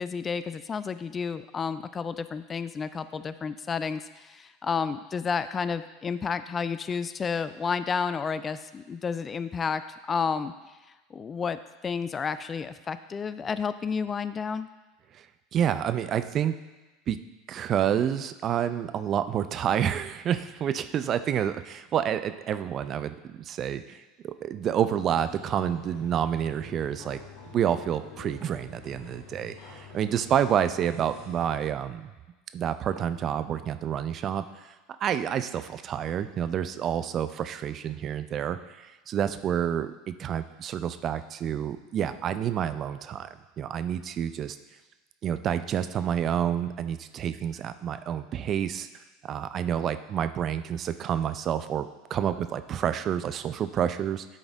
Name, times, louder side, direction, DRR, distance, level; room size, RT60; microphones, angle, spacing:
voice 1, 0.0-9.8 10.1-10.5 11.1-14.7, left 6 dB, 30° left, 13 dB, 0.3 m, -31 dB
voice 2, 15.5-16.6 17.1-17.2 17.5-27.2 27.5-32.1 32.5-34.7 35.0-44.6 45.2-48.9 49.2-54.2, right 9 dB, 40° right, 11 dB, 0.4 m, -29 dB
sound 1, 24.9-31.6, left 5 dB, 70° left, 2.1 m, -47 dB
10.0 x 4.0 x 3.9 m, 1.1 s
hypercardioid pair, 80°, 0 cm